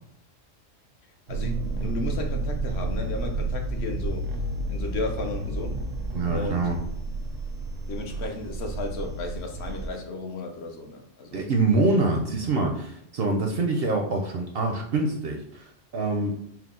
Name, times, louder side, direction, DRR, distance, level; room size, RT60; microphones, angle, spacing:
voice 1, 1.3-4.3 4.7-5.8 6.3-6.7 7.9-11.4, left 3 dB, 65° left, 3 dB, 0.7 m, -34 dB
sound 1, 1.3-9.9, right 2 dB, 85° right, 1.0 m, -31 dB
voice 2, 6.1-6.8 11.3-16.3, right 3 dB, 60° right, 2 dB, 0.6 m, -25 dB
4.5 x 2.1 x 3.6 m, 0.70 s
omnidirectional pair, 1.3 m